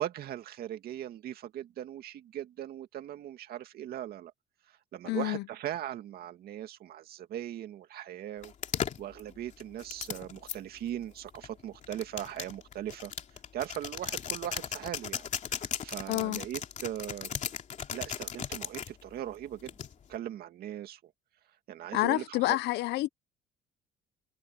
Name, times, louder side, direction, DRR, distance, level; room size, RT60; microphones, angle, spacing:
voice 1, 0.0-4.3 4.7-8.5 9.0-13.1 13.5-15.2 15.5-17.4 17.9-19.7 20.1-21.1 21.7-22.6, right 11 dB, 65° right, 2.2 m, -39 dB
voice 2, 5.1-5.4 16.1-16.4 21.9-23.1, left 18 dB, 80° left, 0.7 m, -28 dB
sound 1, 8.4-10.6 11.4-18.9 19.7-20.1, left 8 dB, 45° left, 2.8 m, -36 dB
cardioid pair, 110°, 17 cm